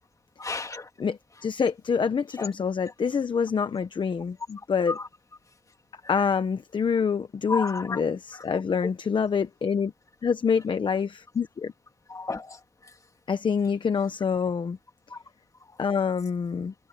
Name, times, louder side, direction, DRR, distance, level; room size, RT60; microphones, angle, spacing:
voice 1, 0.4-0.9 2.4-2.5 4.9-5.1 7.5-8.0 12.1-12.6 15.1-15.2 15.7-15.8, left 3 dB, 35° left, 2.4 m, -32 dB
voice 2, 1.0-5.0 6.1-9.9 10.2-11.7 13.3-14.8 15.8-16.7, left 6 dB, 55° left, 0.9 m, -26 dB
wide cardioid pair, 105°, 10 cm